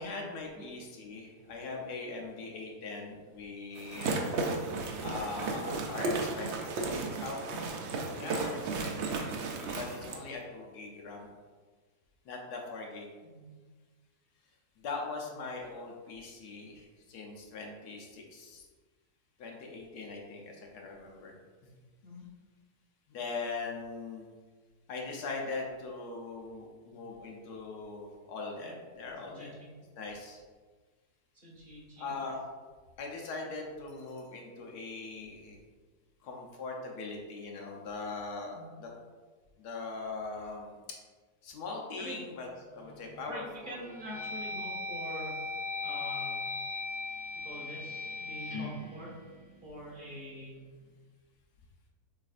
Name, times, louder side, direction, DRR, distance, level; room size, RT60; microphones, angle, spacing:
voice 1, 0.0-4.3 5.0-7.4 8.1-9.3 9.6-11.3 12.2-13.1 14.8-18.7 19.4-21.3 21.6-21.8 23.1-24.3 24.9-29.6 30.0-30.4 32.0-32.4 33.0-35.6 36.2-38.9 39.6-40.8 41.4-42.5 42.7-43.9, left 3 dB, 80° left, 0 dB, 1.3 m, -41 dB
sound 1, 3.8-10.2, right 3 dB, 65° right, 0.7 m, -34 dB
voice 2, 29.2-29.7 31.4-32.1 38.5-38.7 42.0-42.2 43.3-45.4 45.8-46.4 47.4-49.1 49.6-50.6, equal, 40° right, -6 dB, 1.5 m, -45 dB
sound 2, 42.8-43.2 43.7-49.9, left 2 dB, 40° left, 0.8 m, -38 dB
6.4 x 3.3 x 2.5 m, 1.4 s
omnidirectional pair, 1.7 m